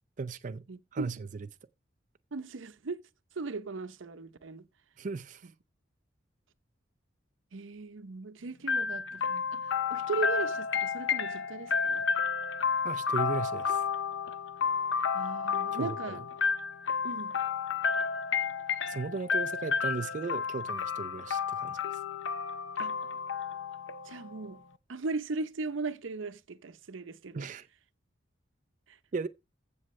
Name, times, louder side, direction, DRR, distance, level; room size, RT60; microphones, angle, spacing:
voice 1, 0.2-0.7 0.9-1.3 5.0-5.5 12.8-13.9 15.7-16.2 18.9-22.0 27.3-27.7 29.1-29.3, right 4 dB, 40° right, 0.4 m, -36 dB
voice 2, 0.7-1.3 2.3-3.0 3.4-4.7 7.5-12.1 15.1-16.2 17.0-17.3 22.8-23.0 24.1-24.6 24.9-27.5 28.9-29.0, right 3 dB, 85° right, 0.7 m, -38 dB
sound 1, 8.7-24.5, left 6 dB, 85° left, 0.8 m, -31 dB
15.0 x 6.3 x 3.1 m
head